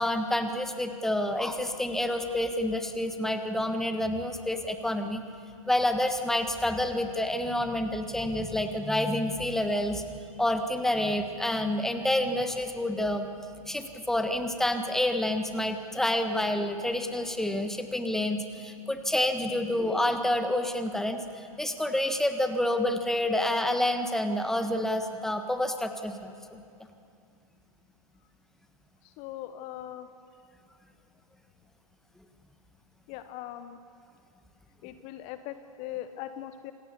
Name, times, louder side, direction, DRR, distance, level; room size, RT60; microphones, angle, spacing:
voice 1, 0.0-5.2 5.7-13.3 13.7-26.6, left 1 dB, ahead, 7 dB, 1.4 m, -28 dB
voice 2, 29.0-30.1 33.1-33.8 34.8-36.7, left 12 dB, 35° left, 11 dB, 1.0 m, -40 dB
27.0 x 18.5 x 7.0 m, 2.5 s
figure-of-eight pair, 110°, 19 cm